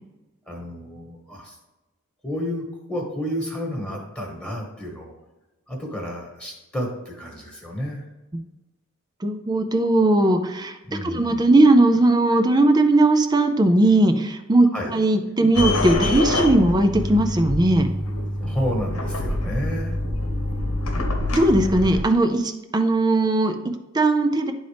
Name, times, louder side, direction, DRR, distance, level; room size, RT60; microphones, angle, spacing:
voice 1, 0.5-1.6 2.2-5.1 5.7-8.0 10.8-11.5 14.7-14.9 18.1-19.9, equal, 5° left, -1 dB, 1.4 m, -31 dB
voice 2, 9.2-17.9 21.3-24.5, right 2 dB, 20° right, 7 dB, 0.4 m, -19 dB
sound 1, 15.5-22.0, left 1 dB, 90° left, 1.1 m, -26 dB
10.5 x 3.9 x 3.4 m, 1.1 s
head